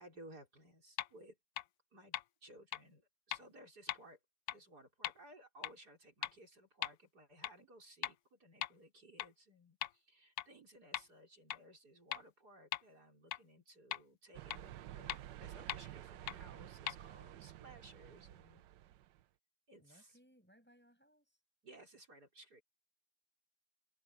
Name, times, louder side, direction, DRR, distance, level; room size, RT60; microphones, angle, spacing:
voice 1, 0.0-1.4 1.9-2.1 2.4-4.2 4.5-15.1 15.4-18.6 19.7-20.2 21.6-22.6, right 1 dB, 55° right, 5.4 m, -59 dB
sound 1, 1.0-1.1 1.6-1.7 2.1-2.2 2.7-2.8 3.3-3.4 3.9-4.0 4.5-4.6 5.0-5.1 5.6-5.7 6.2-6.3 6.8-6.9 7.4-7.5 8.0-8.1 8.6-8.7 9.2-9.3 9.8-9.9 10.4-10.5 10.9-11.0 11.5-11.6 12.1-12.2 12.7-12.8 13.3-13.4 13.9-14.0 14.5-14.6 15.1-15.2 15.7-15.8 16.3-16.4 16.9-17.0, left 13 dB, 70° left, 1.0 m, -39 dB
sound 2, 14.3-19.2, right 13 dB, 75° right, 1.3 m, -51 dB
voice 2, 19.8-21.4, equal, 5° left, 7.3 m, -67 dB
omnidirectional pair, 2.0 m